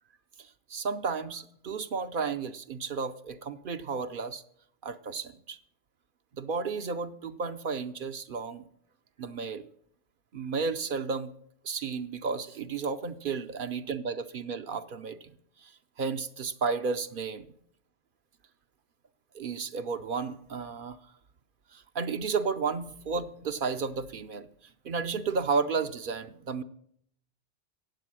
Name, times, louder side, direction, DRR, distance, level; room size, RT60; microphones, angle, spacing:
voice 1, 0.4-4.4 4.8-5.6 6.3-8.6 9.2-9.7 10.3-11.3 11.6-15.7 16.0-17.5 19.3-21.0 21.7-26.6, right 5 dB, 55° right, 10 dB, 0.8 m, -33 dB
15.5 x 9.0 x 6.2 m, 0.68 s
omnidirectional pair, 1.1 m